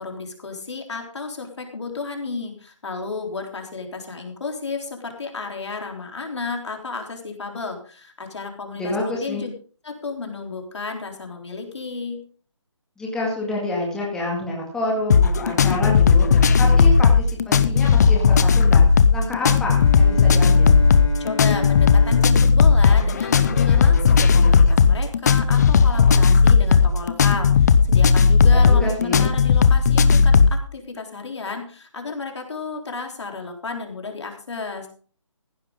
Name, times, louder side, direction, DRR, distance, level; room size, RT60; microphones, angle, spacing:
voice 1, 0.0-9.5 9.8-12.2 21.2-34.9, left 4 dB, 60° left, 3 dB, 3.7 m, -32 dB
voice 2, 8.8-9.4 13.0-18.9 19.1-20.8 28.5-29.3, left 1 dB, 5° left, -3 dB, 2.2 m, -28 dB
sound 1, 15.1-30.6, left 5 dB, 35° left, 0.8 m, -15 dB
Bowed string instrument, 19.7-23.8, left 2 dB, 80° left, 5.2 m, -32 dB
15.5 x 11.5 x 3.7 m, 0.41 s
figure-of-eight pair, 160°, 16 cm